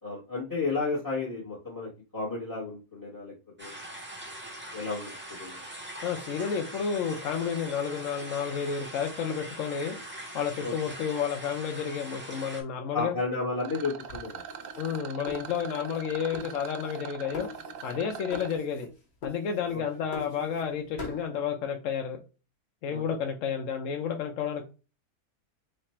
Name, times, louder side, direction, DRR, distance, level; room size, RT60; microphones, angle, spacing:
voice 1, 0.0-3.8 4.7-5.6 10.6-10.7 12.9-14.4 22.9-23.0, left 3 dB, 15° left, -5 dB, 0.9 m, -33 dB
sound 1, 3.6-12.6, right 1 dB, 15° right, 0.4 m, -42 dB
voice 2, 6.0-10.0 10.3-13.1 14.8-17.5 17.8-18.9 19.2-22.2 22.8-24.6, left 7 dB, 70° left, 4 dB, 0.8 m, -31 dB
Rattle, 13.6-18.6, right 8 dB, 70° right, 0.9 m, -42 dB
sound 2, 14.1-16.0 16.3-17.1 17.3-18.0 18.3-18.9 19.2-20.7 21.0-21.3, left 4 dB, 45° left, 1.4 m, -42 dB
3.2 x 2.4 x 4.1 m, 0.32 s
omnidirectional pair, 1.6 m